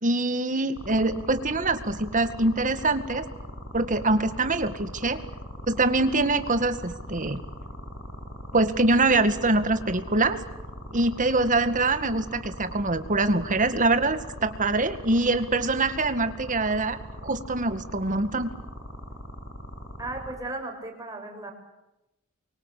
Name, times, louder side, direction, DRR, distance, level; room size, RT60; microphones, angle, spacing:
voice 1, 0.0-3.3 3.7-5.2 5.7-7.4 8.5-10.4 10.9-18.5, right 2 dB, 35° right, 10 dB, 2.1 m, -24 dB
sound 1, 0.8-20.3, equal, 60° left, 7.0 m, -40 dB
voice 2, 20.0-21.5, right 2 dB, 15° right, 2 dB, 6.3 m, -35 dB
28.5 x 24.0 x 8.6 m, 0.94 s
head